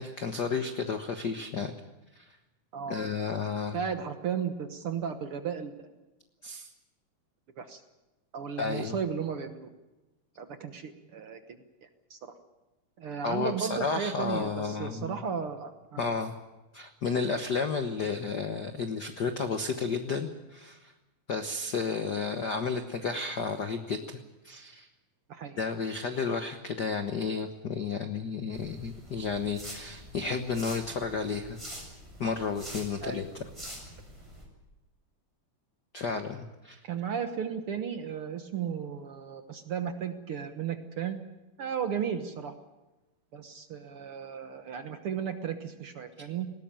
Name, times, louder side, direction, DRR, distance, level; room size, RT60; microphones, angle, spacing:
voice 1, 0.0-1.7 2.1-2.2 2.9-3.8 6.4-6.7 8.6-9.0 13.2-15.2 16.0-16.3 16.7-20.9 21.3-24.9 25.6-31.6 32.2-33.4 35.9-36.8, left 5 dB, 70° left, 7 dB, 1.0 m, -32 dB
voice 2, 3.7-5.8 7.6-7.8 8.3-9.7 10.4-11.4 12.1-12.2 13.0-16.1 25.3-25.6 33.0-33.2 36.9-41.2 41.6-42.5 43.3-46.5, right 7 dB, 60° right, 7 dB, 1.6 m, -34 dB
sound 1, 28.5-34.4, equal, 10° right, 7.1 m, -45 dB
20.0 x 18.0 x 9.0 m, 1.1 s
omnidirectional pair, 3.6 m